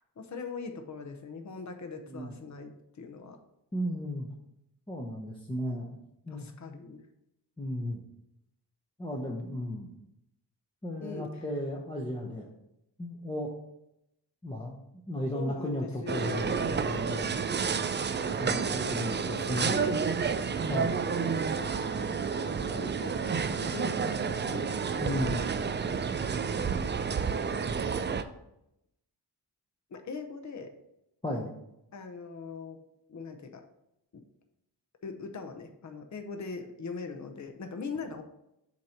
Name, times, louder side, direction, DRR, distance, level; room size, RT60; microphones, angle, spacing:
voice 1, 0.2-3.4 6.3-7.0 11.0-11.4 15.3-17.9 19.1-19.9 20.8-22.1 22.5-24.8 26.2-26.6 27.5-28.0 29.9-30.7 31.9-32.8 33.1-33.6 34.1-34.2 35.0-38.2, left 4 dB, 45° left, 5 dB, 0.8 m, -42 dB
voice 2, 3.7-4.3 4.9-5.9 6.3-6.5 7.6-8.0 9.0-9.9 10.8-12.5 13.0-13.5 14.4-14.8 15.1-16.6 16.8-17.4 18.4-20.0 20.7-21.0 25.0-25.5 31.2-31.5, left 1 dB, 10° left, -2 dB, 0.8 m, -34 dB
sound 1, 16.1-28.2, right 6 dB, 30° right, 0.3 m, -30 dB
7.4 x 2.9 x 5.0 m, 0.83 s
wide cardioid pair, 90°, 42 cm